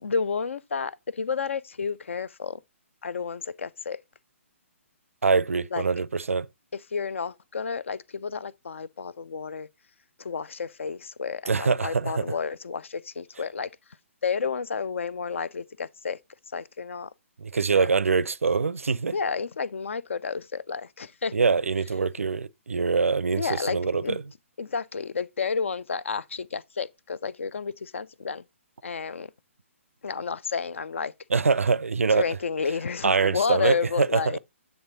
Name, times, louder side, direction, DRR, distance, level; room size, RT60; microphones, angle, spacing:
voice 1, 0.0-2.6 3.0-4.0 5.7-5.8 6.7-9.7 10.2-13.7 14.2-16.2 16.5-17.1 17.7-17.9 19.1-21.3 23.3-24.2 24.6-28.4 28.8-29.3 30.0-31.1 32.1-34.4, left 5 dB, 65° left, 0.4 m, -31 dB
voice 2, 5.2-6.5 11.5-12.2 17.4-19.2 21.3-24.2 31.3-32.2 33.0-34.4, right 4 dB, 75° right, 0.4 m, -24 dB
8.6 x 3.4 x 3.9 m
figure-of-eight pair, 130°, 7 cm